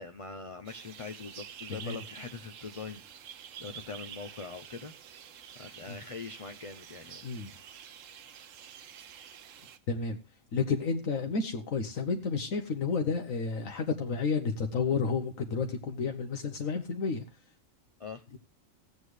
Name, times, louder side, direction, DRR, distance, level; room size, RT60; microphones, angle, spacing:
voice 1, 0.0-3.0 3.6-4.9 5.5-7.2 18.0-18.2, left 4 dB, 40° left, 6 dB, 0.4 m, -42 dB
sound 1, 0.7-9.8, right 8 dB, 70° right, 1.1 m, -49 dB
voice 2, 9.9-10.2 10.5-17.2, left 5 dB, 75° left, 5 dB, 1.4 m, -31 dB
16.0 x 8.3 x 3.2 m, 0.28 s
omnidirectional pair, 1.4 m